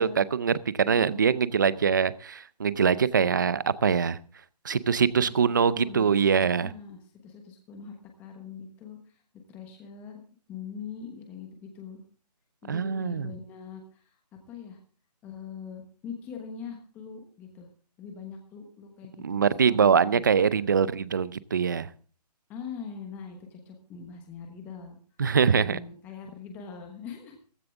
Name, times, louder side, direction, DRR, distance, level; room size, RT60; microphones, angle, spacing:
voice 1, 0.0-4.2 4.6-6.7 12.7-13.3 19.2-21.9 25.2-25.8, right 6 dB, 30° right, 18 dB, 0.5 m, -23 dB
voice 2, 0.8-1.4 5.2-5.3 5.6-9.2 9.5-10.2 10.5-12.0 12.6-14.1 14.5-14.8 15.2-17.7 18.0-20.2 22.5-25.0 25.5-27.4, left 6 dB, 10° left, 3 dB, 1.2 m, -42 dB
15.5 x 14.5 x 3.5 m, 0.38 s
hypercardioid pair, 170°, 21 cm